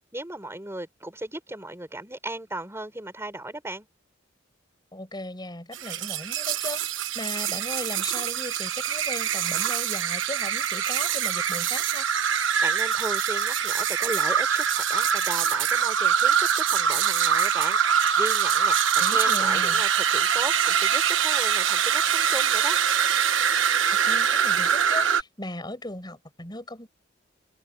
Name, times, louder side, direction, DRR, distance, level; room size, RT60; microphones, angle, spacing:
voice 1, 0.1-3.9 12.6-18.8 19.1-22.8, right 1 dB, 15° right, 5.2 m, -36 dB
voice 2, 4.9-12.1 19.0-19.8 24.0-26.9, left 1 dB, 25° left, 7.4 m, -37 dB
sound 1, 5.7-25.2, right 8 dB, 80° right, 1.2 m, -24 dB
open air
head